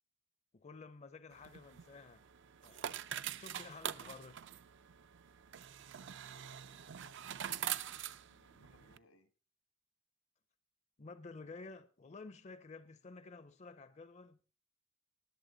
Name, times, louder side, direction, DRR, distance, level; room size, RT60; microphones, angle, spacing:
voice 1, 0.5-2.2 2.6-3.0 3.4-4.4 11.0-14.4, left 3 dB, 35° left, 0.6 m, -52 dB
sound 1, 1.3-9.0, right 10 dB, 60° right, 0.5 m, -44 dB
voice 2, 6.0-9.3, left 2 dB, 85° left, 1.9 m, -66 dB
20.0 x 7.2 x 3.9 m
head